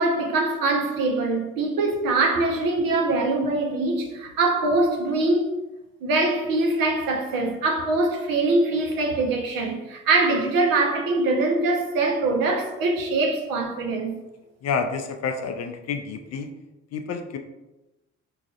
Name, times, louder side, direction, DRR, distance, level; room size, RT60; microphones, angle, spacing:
voice 1, 0.0-5.6 6.0-14.1, right 2 dB, 60° right, 0.8 m, -23 dB
voice 2, 14.6-16.5 16.9-17.4, left 5 dB, 45° left, 0.5 m, -29 dB
4.7 x 2.4 x 2.4 m
hypercardioid pair, 45°, 38 cm